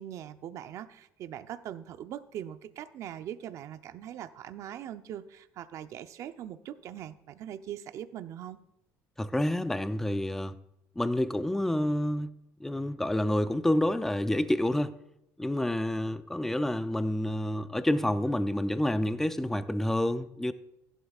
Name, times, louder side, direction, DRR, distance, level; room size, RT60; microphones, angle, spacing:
voice 1, 0.0-8.6, right 10 dB, 55° right, 0.7 m, -41 dB
voice 2, 9.2-10.6 11.0-12.3 12.6-14.9 15.4-20.5, left 1 dB, 5° left, 0.5 m, -28 dB
15.0 x 11.5 x 2.4 m
cardioid pair, 140°, 6 cm